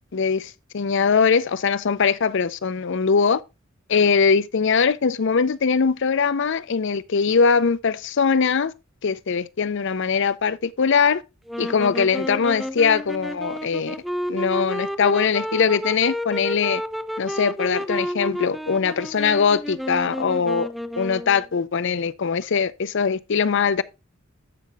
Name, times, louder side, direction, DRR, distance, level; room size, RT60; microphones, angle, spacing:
voice 1, 0.1-3.4 3.9-8.7 9.0-11.2 11.6-14.0 14.3-16.8 17.2-23.8, left 5 dB, 60° left, 0.5 m, -21 dB
sound 1, 11.5-21.5, equal, ahead, 0.5 m, -31 dB
14.5 x 5.8 x 2.3 m
head